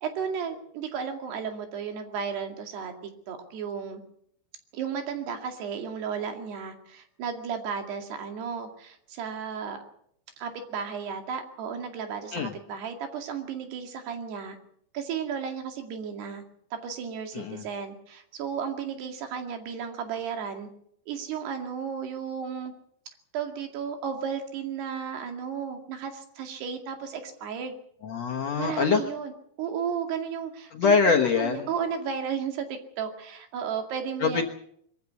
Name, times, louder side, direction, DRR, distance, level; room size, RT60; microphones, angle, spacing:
voice 1, 0.0-2.9 3.3-4.0 4.7-9.8 10.4-14.6 14.9-16.4 16.8-20.7 21.1-22.7 23.3-27.8 28.6-29.3 29.6-31.0 31.4-34.4, right 7 dB, 80° right, 5 dB, 4.3 m, -34 dB
voice 2, 28.0-29.0 30.7-31.7 34.2-34.4, left 5 dB, 65° left, 2 dB, 1.7 m, -24 dB
23.0 x 14.5 x 8.2 m, 0.70 s
omnidirectional pair, 4.7 m